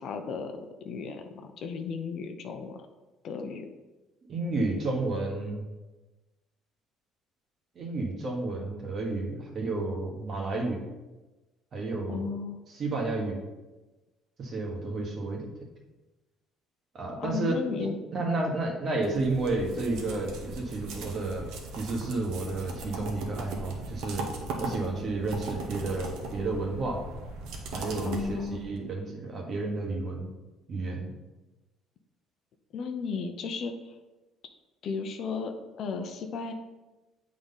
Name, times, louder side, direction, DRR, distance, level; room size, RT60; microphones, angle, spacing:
voice 1, 0.0-2.8 3.2-3.7 12.1-12.6 17.2-18.0 28.0-28.6 32.7-33.9 34.8-36.5, left 5 dB, 55° left, 6 dB, 0.6 m, -34 dB
voice 2, 4.3-5.6 7.7-10.9 11.7-12.3 12.7-13.4 14.4-15.5 16.9-17.5 17.8-21.5 21.7-24.3 24.6-27.0 27.7-30.3 30.7-31.1, right 2 dB, 40° right, 1 dB, 1.4 m, -31 dB
sound 1, 19.0-28.8, right 3 dB, 80° right, 1.0 m, -39 dB
8.0 x 3.7 x 3.9 m, 1.1 s
cardioid pair, 125°, 0 cm